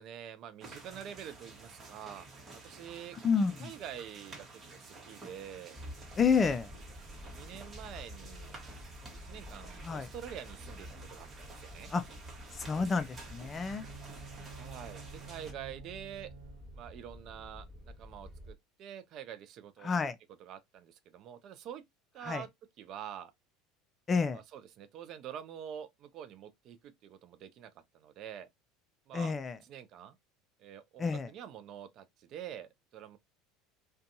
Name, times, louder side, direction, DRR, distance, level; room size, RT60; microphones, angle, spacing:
voice 1, 0.0-2.3 2.5-3.2 3.6-5.8 7.2-8.6 9.2-11.9 14.5-16.3 16.7-19.9 20.4-21.8 22.1-22.5 22.8-23.3 24.3-28.5 29.1-29.3 29.6-30.2 30.6-33.2, right 9 dB, 55° right, 0.4 m, -46 dB
sound 1, 0.6-15.5, right 3 dB, 30° right, 1.0 m, -51 dB
voice 2, 3.2-3.7 6.2-6.7 9.8-10.1 11.9-12.0 12.6-13.9 19.8-20.1 22.3-22.4 24.1-24.4 29.1-29.6 31.0-31.3, left 5 dB, 25° left, 0.3 m, -29 dB
sound 2, 5.7-18.5, left 1 dB, 10° right, 1.3 m, -50 dB
Bowed string instrument, 13.2-17.0, right 7 dB, 90° right, 0.8 m, -51 dB
2.6 x 2.2 x 2.5 m
supercardioid pair, 95°, 0 cm